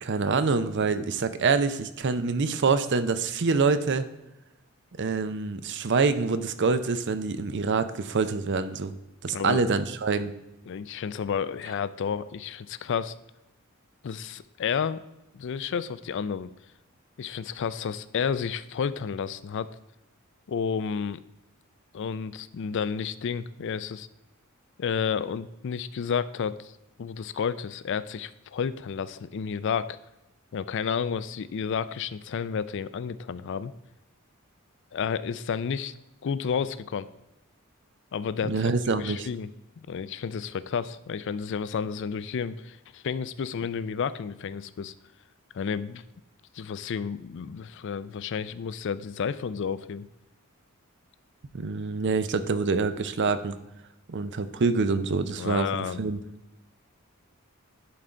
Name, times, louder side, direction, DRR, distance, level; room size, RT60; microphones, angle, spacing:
voice 1, 0.0-4.1 5.0-8.9 9.2-10.3 38.4-39.3 51.5-53.6 54.1-56.2, right 4 dB, 55° right, 12 dB, 0.6 m, -26 dB
voice 2, 9.3-9.6 10.7-13.1 14.0-15.0 15.3-16.5 17.2-19.7 20.5-21.2 21.9-24.1 24.8-26.7 27.0-30.0 30.5-33.7 34.9-35.9 36.2-37.1 38.1-38.5 39.0-39.5 39.9-44.9 45.5-46.0 46.5-50.1 55.4-56.0, left 6 dB, 55° left, 15 dB, 0.4 m, -31 dB
11.0 x 3.9 x 4.4 m, 0.95 s
head